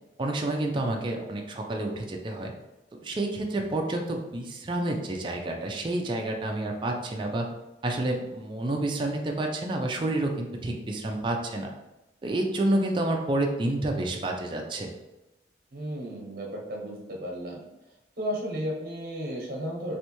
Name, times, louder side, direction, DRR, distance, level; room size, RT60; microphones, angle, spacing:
voice 1, 0.2-2.5 3.0-7.5 7.8-11.7 12.2-14.9, right 1 dB, 25° right, 1 dB, 0.4 m, -29 dB
voice 2, 15.7-17.6 18.2-20.0, equal, 55° right, -2 dB, 1.0 m, -34 dB
3.2 x 2.6 x 2.9 m, 0.96 s
head